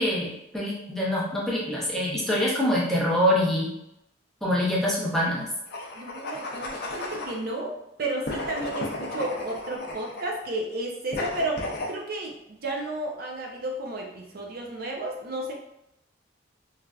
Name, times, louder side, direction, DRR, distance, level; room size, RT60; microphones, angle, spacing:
voice 1, 0.0-3.7 4.4-5.5, left 1 dB, ahead, -5 dB, 0.6 m, -25 dB
sound 1, 5.7-7.4 8.2-10.4 11.1-11.9, left 2 dB, 50° left, 0.5 m, -34 dB
voice 2, 5.9-15.5, right 2 dB, 50° right, 0 dB, 0.5 m, -32 dB
3.2 x 2.4 x 2.3 m, 0.82 s
head